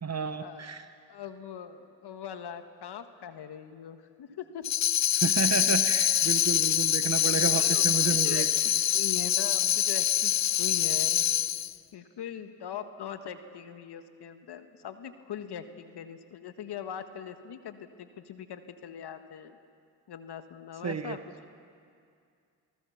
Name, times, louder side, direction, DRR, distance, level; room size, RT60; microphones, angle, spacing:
voice 1, 0.0-0.9 5.1-8.5 20.8-21.2, right 5 dB, 35° right, 9 dB, 1.3 m, -31 dB
voice 2, 1.1-4.6 5.0-5.1 6.6-11.2 11.9-19.6 20.1-21.2, left 8 dB, 65° left, 9 dB, 1.6 m, -41 dB
Tambourine, 4.6-11.7, left 12 dB, 40° left, 0.5 m, -25 dB
29.5 x 19.0 x 7.2 m, 2.3 s
hypercardioid pair, 50°, 43 cm